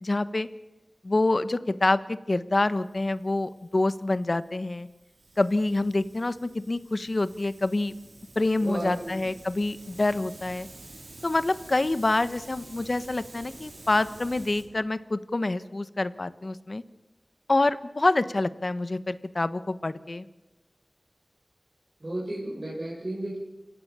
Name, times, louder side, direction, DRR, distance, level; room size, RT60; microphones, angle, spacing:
voice 1, 0.0-0.5 1.0-4.9 5.4-7.9 8.3-10.7 11.2-16.8 17.5-20.3, left 2 dB, 50° left, 13 dB, 1.3 m, -26 dB
Hiss, 2.7-14.6, right 2 dB, 80° right, 5.0 m, -49 dB
voice 2, 8.6-9.2 22.0-23.4, right 1 dB, 45° right, -4 dB, 6.4 m, -33 dB
29.0 x 16.0 x 7.0 m, 1.1 s
wide cardioid pair, 50°, 0 cm